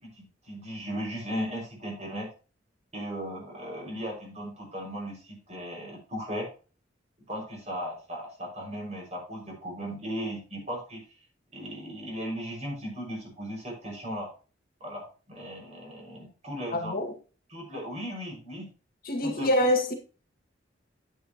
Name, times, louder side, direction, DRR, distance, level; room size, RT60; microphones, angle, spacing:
voice 1, 0.0-2.3 2.9-6.5 7.3-11.0 11.5-14.3 14.8-17.0 17.5-18.7 19.2-19.5, equal, 35° right, 6.1 m, -37 dB
voice 2, 16.7-17.1 19.1-19.9, left 1 dB, 55° left, 2.1 m, -25 dB
9.8 x 9.4 x 3.0 m
head